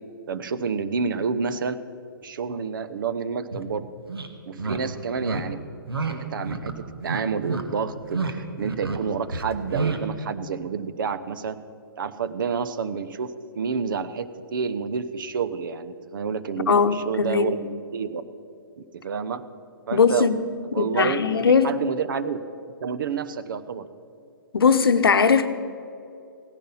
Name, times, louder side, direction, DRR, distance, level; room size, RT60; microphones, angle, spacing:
voice 1, 0.3-1.8 2.2-3.9 4.5-5.6 6.1-11.6 12.0-13.3 13.5-18.2 18.8-19.4 19.9-20.3 20.7-22.4 22.8-23.9, right 6 dB, 60° right, 13 dB, 0.8 m, -29 dB
sound 1, 3.5-3.6 4.1-4.3 4.6-4.8 5.2-5.4 5.9-6.1 6.4-6.7 7.0-7.6 8.0-8.3 8.6-9.0 9.3-10.0, right 4 dB, 85° right, 1.4 m, -29 dB
voice 2, 16.7-17.6 19.9-20.5 20.8-21.7 24.5-25.5, left 5 dB, 75° left, 10 dB, 0.8 m, -19 dB
16.0 x 10.5 x 5.6 m, 2.5 s
hypercardioid pair, 130°, 12 cm